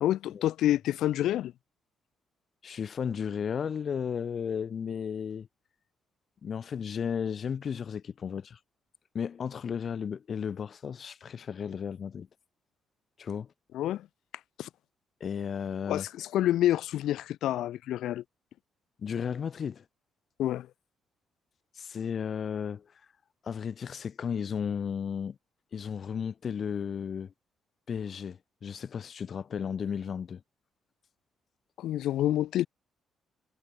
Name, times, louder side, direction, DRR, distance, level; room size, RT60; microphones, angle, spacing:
voice 1, 0.0-1.5 13.7-14.1 14.6-14.7 15.9-18.2 20.4-20.7 31.8-32.7, left 13 dB, 80° left, 0.9 m, -28 dB
voice 2, 2.6-5.5 6.4-8.6 9.1-12.3 13.2-13.5 15.2-16.1 19.0-19.8 21.8-22.8 23.4-25.4 25.7-27.3 27.9-30.4, left 7 dB, 50° left, 7.7 m, -34 dB
cardioid pair, 90°, 0 cm